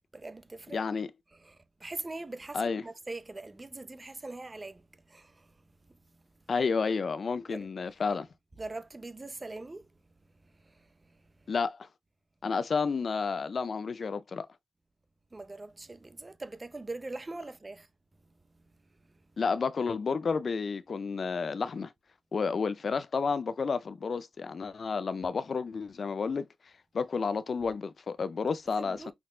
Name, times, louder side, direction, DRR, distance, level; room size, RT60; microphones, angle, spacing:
voice 1, 0.1-0.8 1.3-6.0 6.3-6.4 7.5-7.9 8.6-10.0 10.4-11.5 15.3-17.9 18.5-18.7 19.0-19.1 28.8-29.1, right 2 dB, 35° right, 0.5 m, -43 dB
voice 2, 0.7-1.1 2.5-2.8 6.5-8.3 11.5-11.9 12.4-14.5 19.4-21.9 22.3-26.5 26.9-29.1, left 5 dB, 65° left, 0.3 m, -31 dB
5.8 x 2.1 x 2.3 m
cardioid pair, 45°, 0 cm